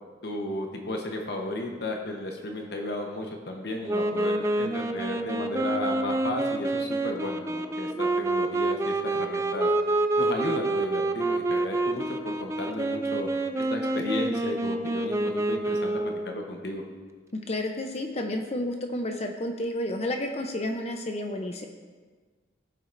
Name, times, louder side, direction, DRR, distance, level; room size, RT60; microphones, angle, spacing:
voice 1, 0.2-9.7 10.2-13.3 13.7-16.8, left 1 dB, 60° left, 2 dB, 1.0 m, -34 dB
Wind instrument woodwind instrument, 3.9-16.3, right 2 dB, 15° right, 0.4 m, -28 dB
voice 2, 17.5-21.7, left 1 dB, 35° left, 4 dB, 0.6 m, -31 dB
16.0 x 7.7 x 2.6 m, 1.4 s
head